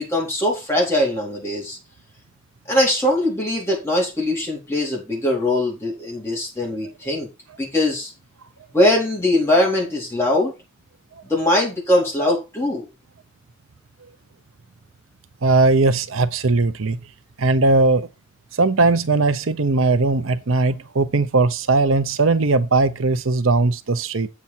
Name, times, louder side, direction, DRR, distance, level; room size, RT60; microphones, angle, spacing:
voice 1, 0.0-1.8 2.7-7.3 7.6-8.1 8.7-10.5 11.3-12.9, left 1 dB, 15° left, 4.1 m, -21 dB
voice 2, 15.4-17.0 17.4-18.1 18.6-24.3, right 3 dB, 85° right, 0.8 m, -19 dB
8.4 x 7.2 x 4.4 m
head